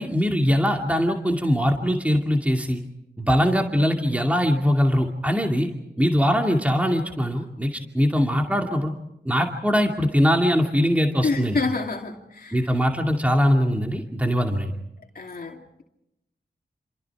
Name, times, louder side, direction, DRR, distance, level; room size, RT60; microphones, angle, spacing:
voice 1, 0.0-2.8 3.2-5.7 6.0-8.9 9.3-11.6 12.5-14.7, equal, 10° right, 2 dB, 2.4 m, -22 dB
voice 2, 11.2-12.7 15.1-15.8, left 3 dB, 55° left, 0 dB, 2.6 m, -28 dB
28.0 x 26.5 x 4.8 m, 0.85 s
cardioid pair, 55°, 18 cm